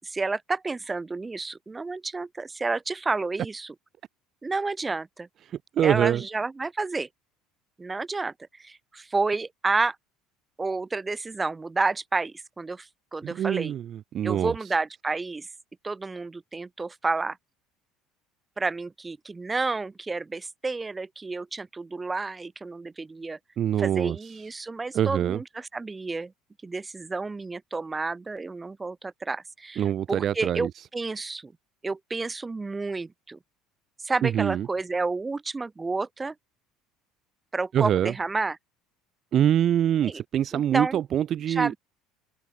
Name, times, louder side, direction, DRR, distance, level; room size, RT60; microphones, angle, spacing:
voice 1, 0.0-3.7 4.4-5.3 5.8-7.1 7.8-10.0 10.6-13.7 14.2-15.5 15.8-17.4 18.6-23.4 23.8-26.3 26.6-31.5 31.8-33.4 34.0-36.3 37.5-38.6 40.0-40.2 40.5-41.0 41.5-41.8, right 3 dB, 20° right, 5.4 m, -30 dB
voice 2, 5.5-6.2 13.2-14.5 23.6-24.2 24.9-25.4 29.8-30.7 34.2-34.7 37.7-38.1 39.3-41.7, right 10 dB, 50° right, 2.0 m, -24 dB
supercardioid pair, 100°, 0 cm